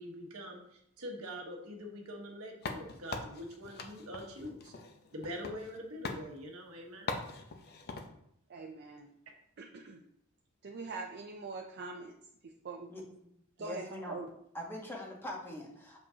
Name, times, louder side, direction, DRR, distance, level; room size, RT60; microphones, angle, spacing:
voice 1, 0.0-4.7 5.1-7.2, equal, 80° right, 1 dB, 1.2 m, -44 dB
sound 1, 2.6-5.8 6.0-6.3 7.1-8.1, left 3 dB, 50° left, 0.6 m, -41 dB
voice 2, 8.5-9.1 9.6-10.0 10.6-12.2 12.4-12.9 13.6-14.3, right 3 dB, 50° right, 1 dB, 0.5 m, -43 dB
voice 3, 13.6-14.2 14.5-16.1, left 1 dB, 10° left, -1 dB, 1.2 m, -42 dB
6.8 x 5.2 x 2.8 m, 0.75 s
head